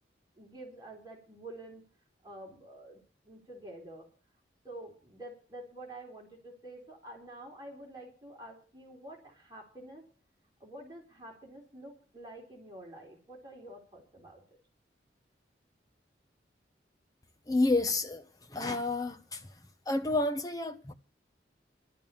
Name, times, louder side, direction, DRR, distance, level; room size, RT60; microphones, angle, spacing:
voice 1, 0.4-1.9 2.2-3.0 3.2-4.1 4.6-10.0 10.6-14.4, right 1 dB, 20° right, 4.1 m, -48 dB
voice 2, 17.5-18.2 18.5-19.5 19.9-20.9, left 2 dB, 20° left, 1.0 m, -29 dB
12.0 x 9.1 x 7.1 m
head